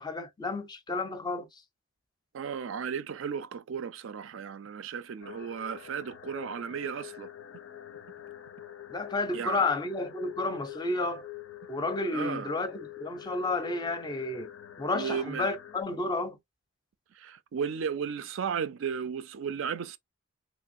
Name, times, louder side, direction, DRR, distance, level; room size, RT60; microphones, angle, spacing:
voice 1, 0.0-1.6 8.9-11.3 11.7-14.5 14.8-16.4, left 2 dB, 20° left, 0.4 m, -31 dB
voice 2, 2.3-7.3 9.3-9.6 12.1-12.5 14.9-15.5 17.1-20.0, right 7 dB, 75° right, 0.4 m, -34 dB
sound 1, 5.2-15.8, left 12 dB, 75° left, 0.5 m, -45 dB
3.1 x 2.5 x 2.5 m
head